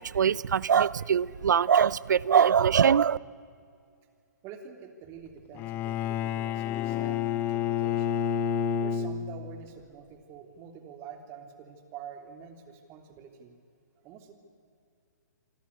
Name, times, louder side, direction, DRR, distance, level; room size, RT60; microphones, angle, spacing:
voice 1, 0.0-3.2, right 7 dB, 75° right, 22 dB, 0.6 m, -22 dB
voice 2, 4.4-8.2 8.8-13.5 14.0-14.3, right 7 dB, 25° right, 5 dB, 3.2 m, -47 dB
Bowed string instrument, 5.6-9.7, left 8 dB, 20° left, 0.7 m, -29 dB
26.5 x 24.0 x 8.5 m, 2.3 s
hypercardioid pair, 145°, 10 cm